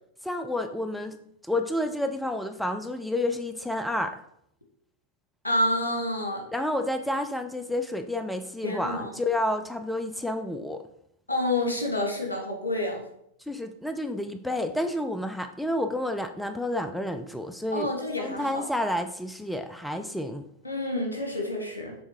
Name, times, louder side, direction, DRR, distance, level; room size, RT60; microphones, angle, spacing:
voice 1, 0.2-1.2 1.5-4.2 6.5-10.8 13.5-17.9 18.2-20.5, left 1 dB, ahead, 7 dB, 0.4 m, -30 dB
voice 2, 5.4-6.4 8.6-9.2 11.3-13.0 17.7-18.7 20.6-22.0, left 1 dB, 80° left, 2 dB, 1.4 m, -28 dB
7.1 x 3.3 x 4.8 m, 0.72 s
figure-of-eight pair, 90°, 0 cm